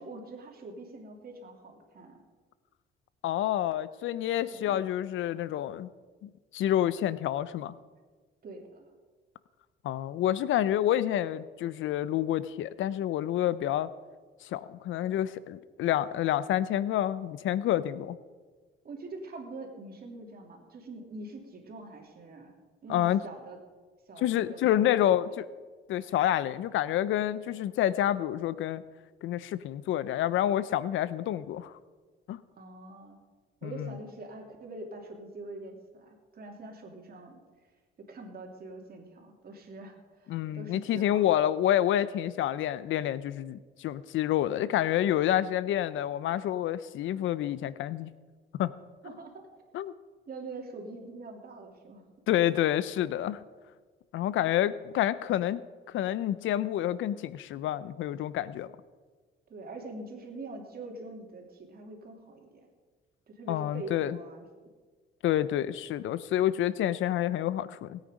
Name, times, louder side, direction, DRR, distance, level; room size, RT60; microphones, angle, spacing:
voice 1, 0.0-2.2 4.5-4.8 8.4-8.9 18.8-22.5 22.8-23.6 24.1-25.2 32.5-33.2 33.6-37.4 38.1-41.3 49.0-49.5 50.3-52.1 59.5-62.7 63.3-64.5, right 2 dB, 50° right, 2 dB, 3.0 m, -44 dB
voice 2, 3.2-5.9 6.2-7.7 9.8-13.9 14.4-18.2 22.9-23.2 24.2-25.4 25.9-28.8 29.2-31.7 32.3-32.4 33.6-33.9 40.3-48.1 48.6-48.7 49.7-49.9 52.3-53.4 54.1-55.6 55.9-58.7 63.5-64.2 65.2-68.0, left 12 dB, 80° left, 17 dB, 0.6 m, -28 dB
19.5 x 9.1 x 5.2 m, 1.4 s
cardioid pair, 90°, 20 cm